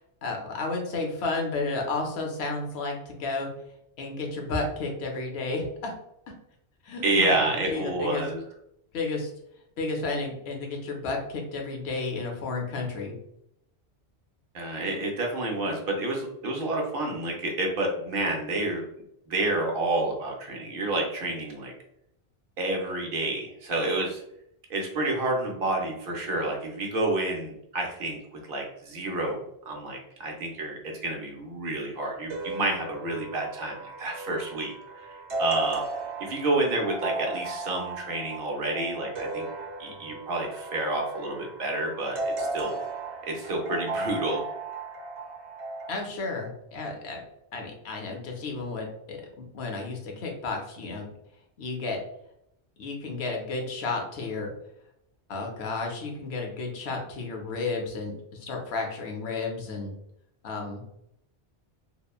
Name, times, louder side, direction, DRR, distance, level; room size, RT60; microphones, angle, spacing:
voice 1, 0.2-3.5 4.0-5.9 6.3-6.4 6.8-8.2 8.9-9.3 9.8-13.1 45.9-47.2 47.5-51.1 51.6-52.0 52.8-54.5 55.3-58.1 58.4-59.9 60.4-60.8, left 3 dB, 70° left, 1 dB, 0.9 m, -32 dB
voice 2, 7.0-8.4 14.5-18.8 19.3-21.7 22.6-24.2 24.7-28.2 28.5-35.8 36.2-39.5 39.8-42.8 43.2-44.4, right 2 dB, 60° right, 1 dB, 0.7 m, -29 dB
sound 1, 32.3-46.0, right 2 dB, 90° right, 1.0 m, -36 dB
2.9 x 2.1 x 2.3 m, 0.78 s
omnidirectional pair, 1.1 m